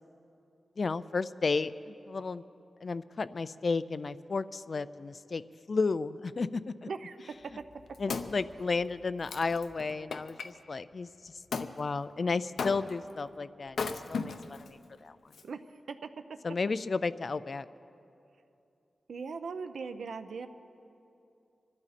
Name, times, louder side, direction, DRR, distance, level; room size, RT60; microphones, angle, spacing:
voice 1, 0.8-2.4 2.8-5.4 5.7-6.9 8.0-11.3 11.8-15.2 16.4-17.7, left 4 dB, 45° left, 15 dB, 0.3 m, -33 dB
voice 2, 6.8-7.2 15.4-15.6 15.9-16.1 19.1-20.5, right 5 dB, 80° right, 8 dB, 0.6 m, -39 dB
Wood, 7.5-10.5 11.5-11.7 12.6-13.1 13.7-14.7 15.3-15.4, left 5 dB, 80° left, 0.7 m, -37 dB
25.0 x 11.5 x 4.2 m, 2.7 s
wide cardioid pair, 150°, 0 cm